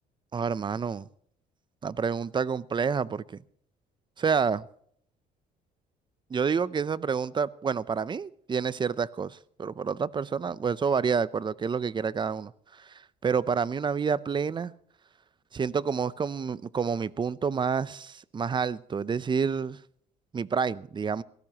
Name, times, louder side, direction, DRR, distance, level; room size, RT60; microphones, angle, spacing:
voice 1, 0.3-1.1 1.8-3.4 4.2-4.7 6.3-14.7 15.5-19.8 20.3-21.2, right 6 dB, 25° right, 0.6 m, -28 dB
22.0 x 17.0 x 3.0 m
cardioid pair, 110°, 17 cm